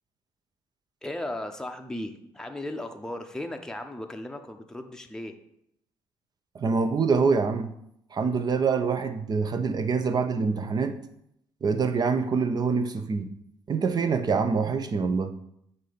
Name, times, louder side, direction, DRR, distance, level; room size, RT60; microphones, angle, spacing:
voice 1, 1.0-5.3, left 1 dB, 5° left, 0.7 m, -36 dB
voice 2, 6.5-7.7 8.1-11.0 11.6-13.3 13.7-15.3, right 5 dB, 40° right, 0.7 m, -25 dB
7.5 x 2.8 x 5.0 m
supercardioid pair, 70°, 10 cm